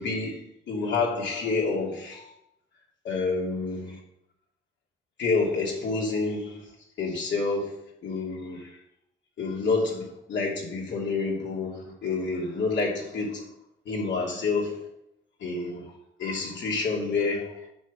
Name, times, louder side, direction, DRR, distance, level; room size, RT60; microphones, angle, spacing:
voice 1, 0.0-2.3 3.0-4.0 5.2-6.7 7.0-8.8 9.4-13.5 13.8-14.9 15.4-17.7, left 4 dB, 65° left, -2 dB, 3.1 m, -29 dB
8.6 x 5.5 x 6.5 m, 0.79 s
cardioid pair, 90°, 20 cm